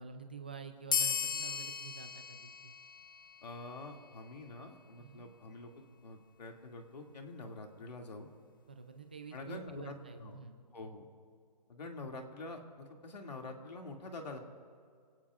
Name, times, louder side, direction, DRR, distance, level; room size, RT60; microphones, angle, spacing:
voice 1, 0.0-2.4 2.6-2.7 5.0-5.3 8.7-10.6, right 5 dB, 15° right, 7 dB, 0.4 m, -48 dB
sound 1, 0.9-3.9, left 7 dB, 30° left, 0.6 m, -36 dB
voice 2, 3.4-8.3 9.3-10.4 10.7-11.1 11.7-14.4, left 2 dB, 75° left, 2 dB, 2.5 m, -46 dB
28.0 x 18.0 x 2.5 m, 2.2 s
hypercardioid pair, 175°, 21 cm